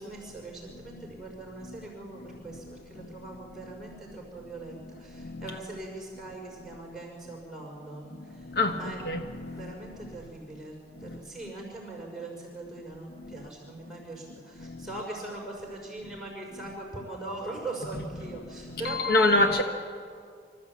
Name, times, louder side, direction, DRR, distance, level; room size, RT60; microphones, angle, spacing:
voice 1, 0.0-9.0 9.5-19.6, right 2 dB, ahead, -2 dB, 5.8 m, -41 dB
voice 2, 5.1-5.6 8.3-9.7 11.0-11.2 14.6-15.0 17.9-18.4 18.6-19.6, left 2 dB, 55° left, 4 dB, 1.2 m, -28 dB
25.5 x 14.5 x 8.6 m, 2.2 s
head